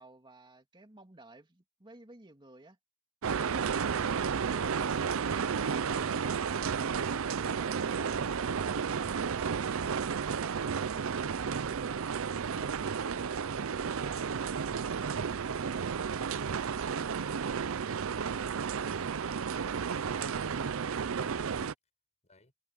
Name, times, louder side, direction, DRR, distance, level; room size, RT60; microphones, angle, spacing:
voice 1, 0.0-2.8, right 2 dB, 20° right, 2.3 m, -54 dB
sound 1, 3.2-21.7, right 6 dB, 65° right, 0.5 m, -32 dB
voice 2, 16.8-20.8 22.2-22.5, left 2 dB, 30° left, 5.5 m, -64 dB
head